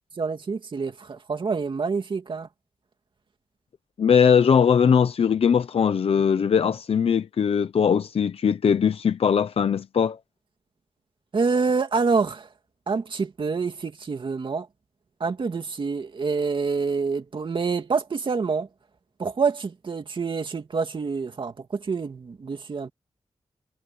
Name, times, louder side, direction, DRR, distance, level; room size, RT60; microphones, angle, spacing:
voice 1, 0.2-2.5 11.3-12.5 12.9-14.7 15.2-18.7 19.2-22.9, right 4 dB, 50° right, 2.7 m, -27 dB
voice 2, 4.0-10.2, left 7 dB, 70° left, 0.7 m, -20 dB
wide cardioid pair, 135°, 10 cm